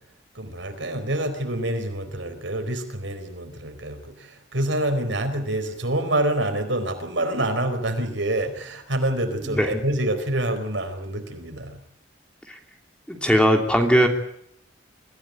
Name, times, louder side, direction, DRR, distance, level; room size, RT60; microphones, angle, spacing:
voice 1, 0.3-11.8, right 1 dB, 80° right, 7 dB, 4.4 m, -27 dB
voice 2, 13.1-14.1, equal, 5° left, 3 dB, 2.9 m, -19 dB
25.5 x 15.0 x 9.4 m, 0.72 s
head